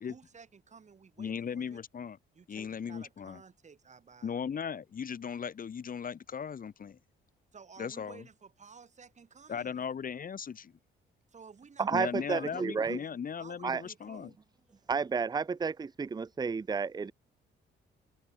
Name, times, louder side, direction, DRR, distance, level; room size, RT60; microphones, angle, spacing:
voice 1, 0.0-1.8 2.4-4.3 7.5-9.8 11.3-13.1 13.4-14.4, right 5 dB, 35° right, 2.5 m, -54 dB
voice 2, 1.2-2.2 2.5-3.4 4.2-7.0 7.8-8.3 9.5-10.7 11.9-14.3, left 7 dB, 45° left, 1.8 m, -37 dB
voice 3, 11.8-13.0 13.6-13.8 14.9-17.1, right 5 dB, 20° right, 0.5 m, -31 dB
open air
cardioid pair, 90°, 20 cm